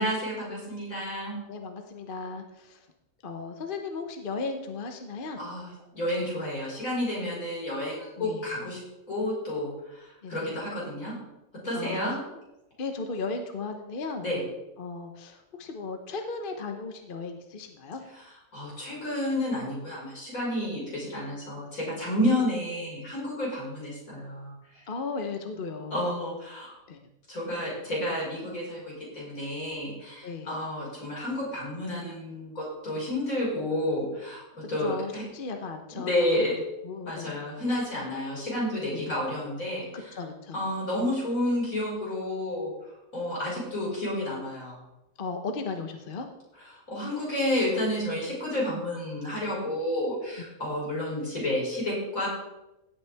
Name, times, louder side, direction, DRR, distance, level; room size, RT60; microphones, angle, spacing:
voice 1, 0.0-1.4 5.4-8.8 9.1-11.2 11.6-12.2 14.2-14.4 18.1-24.9 25.9-26.7 27.3-35.2 35.9-36.5 37.1-40.2 40.5-42.7 43.1-44.8 46.6-52.3, left 1 dB, 75° left, -5 dB, 5.6 m, -30 dB
voice 2, 1.5-2.9 3.2-5.4 8.2-8.5 10.2-10.6 11.7-12.0 12.8-14.2 14.8-18.0 24.9-26.0 26.9-27.0 30.2-30.6 34.8-36.5 36.8-37.4 38.9-39.1 39.9-40.6 45.2-46.3, left 4 dB, 45° left, 5 dB, 1.0 m, -36 dB
16.5 x 8.5 x 3.5 m, 0.95 s
omnidirectional pair, 1.5 m